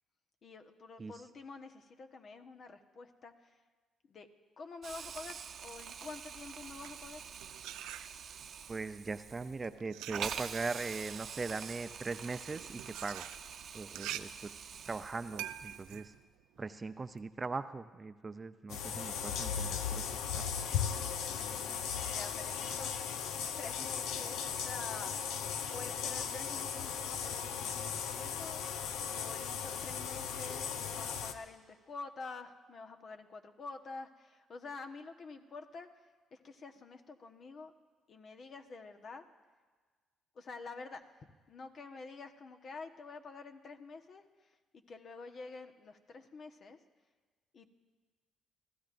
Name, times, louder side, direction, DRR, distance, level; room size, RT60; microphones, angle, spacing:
voice 1, 0.4-3.5 4.1-4.3 4.6-7.3 21.3-22.9 23.6-25.2 25.6-28.9 29.1-35.9 36.3-37.7 38.1-39.2 40.3-46.8 47.5-47.7, left 4 dB, 55° left, 5 dB, 1.2 m, -48 dB
Hiss, 4.8-16.1, right 7 dB, 60° right, 0.8 m, -46 dB
sound 1, 6.6-8.5 9.3-17.2, right 13 dB, 80° right, 0.4 m, -46 dB
voice 2, 8.7-13.3 13.7-14.5 14.9-16.1 16.6-20.4, right 4 dB, 30° right, 11 dB, 0.6 m, -40 dB
sound 2, 18.7-31.3, left 7 dB, 80° left, 0.7 m, -37 dB
28.0 x 15.0 x 2.6 m, 1.4 s
supercardioid pair, 60°, 0 cm